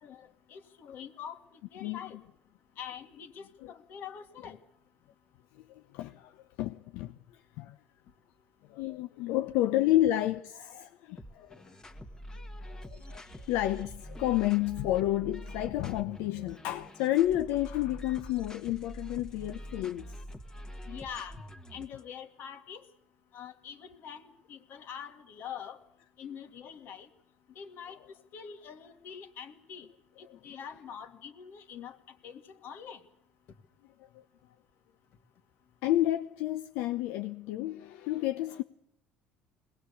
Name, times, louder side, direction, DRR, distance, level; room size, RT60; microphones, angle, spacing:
voice 1, 0.0-1.4 1.7-2.2 2.8-4.6 20.9-21.3 21.7-22.8 23.3-25.8 26.2-27.1 27.6-28.0 28.3-29.9 30.2-32.0 32.2-33.0, left 8 dB, 60° left, 2.3 m, -44 dB
voice 2, 5.7-6.3 6.6-7.2 7.6-7.7 8.7-11.6 12.6-20.1 35.8-38.6, left 14 dB, 80° left, 0.8 m, -30 dB
sound 1, 11.2-22.0, equal, 15° left, 1.8 m, -45 dB
22.0 x 19.0 x 8.4 m
cardioid pair, 115°, 4 cm